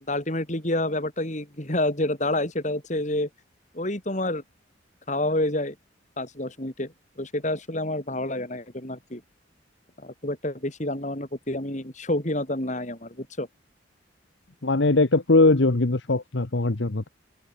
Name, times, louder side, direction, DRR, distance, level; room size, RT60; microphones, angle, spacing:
voice 1, 0.1-3.3 3.7-4.4 5.1-5.8 6.2-6.9 7.2-9.2 10.0-13.5, left 1 dB, 40° left, 3.5 m, -28 dB
voice 2, 14.6-17.1, left 2 dB, 70° left, 1.1 m, -21 dB
head